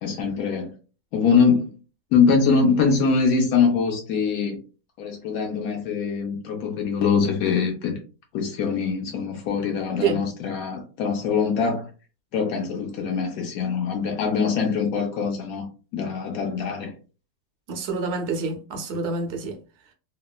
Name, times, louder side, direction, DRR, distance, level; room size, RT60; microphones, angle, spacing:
voice 1, 0.0-0.7 1.1-1.7 2.1-4.6 5.0-8.0 8.3-11.9 12.3-15.7 15.9-16.9, left 5 dB, 70° left, 0.9 m, -23 dB
voice 2, 17.7-19.6, right 4 dB, 70° right, 0.6 m, -27 dB
3.0 x 2.2 x 2.3 m
omnidirectional pair, 1.7 m